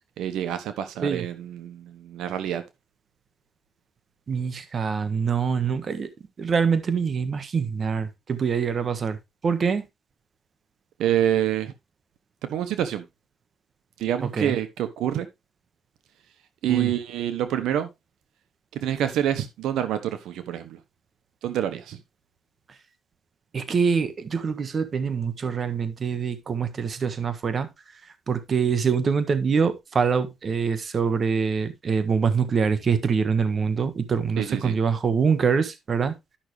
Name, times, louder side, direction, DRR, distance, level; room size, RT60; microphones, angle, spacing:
voice 1, 0.2-2.6 11.0-11.7 12.4-13.0 14.0-15.3 16.6-17.9 18.7-20.8 21.4-22.0 34.4-34.7, right 11 dB, 85° right, 1.1 m, -27 dB
voice 2, 4.3-6.1 6.4-9.2 9.4-9.9 14.3-14.6 16.7-16.9 23.5-27.7 28.0-36.2, right 6 dB, 45° right, 1.4 m, -24 dB
11.5 x 6.2 x 3.3 m
cardioid pair, 90°, 0 cm